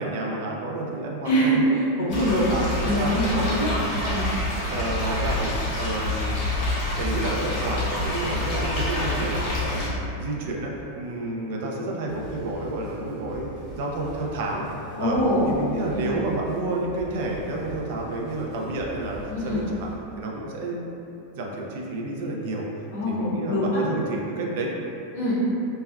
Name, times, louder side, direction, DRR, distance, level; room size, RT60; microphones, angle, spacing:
voice 1, 0.0-3.5 4.7-6.4 6.9-14.6 15.0-15.2 15.5-19.9 20.2-20.9 21.4-22.7 23.1-24.7, right 2 dB, 55° right, -1 dB, 0.4 m, -30 dB
voice 2, 1.2-2.5 2.8-4.3 15.0-15.4 16.0-16.2 19.3-19.6 22.9-23.8 25.1-25.3, equal, 85° left, -7 dB, 1.0 m, -24 dB
sound 1, 2.1-9.9, left 1 dB, 45° left, 0.7 m, -27 dB
sound 2, 12.1-20.0, left 1 dB, 5° left, 0.6 m, -42 dB
3.2 x 2.2 x 2.2 m, 2.8 s
supercardioid pair, 160°, 0 cm